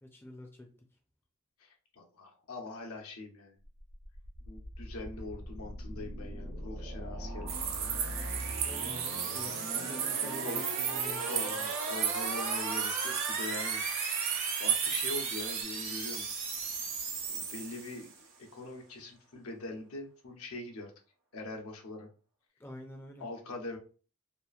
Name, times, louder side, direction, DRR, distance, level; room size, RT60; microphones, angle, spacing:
voice 1, 0.0-0.7 8.6-11.7 22.6-23.3, left 1 dB, 10° left, 0.4 m, -47 dB
voice 2, 1.6-3.6 4.4-7.5 10.0-10.1 10.4-10.6 11.3-14.3 14.6-16.3 17.3-20.9 21.3-22.1 23.2-23.8, left 2 dB, 75° left, 0.8 m, -43 dB
sound 1, 3.8-18.3, right 3 dB, 65° right, 0.9 m, -38 dB
sound 2, 7.5-15.6, right 8 dB, 45° right, 0.4 m, -34 dB
2.9 x 2.4 x 2.3 m
head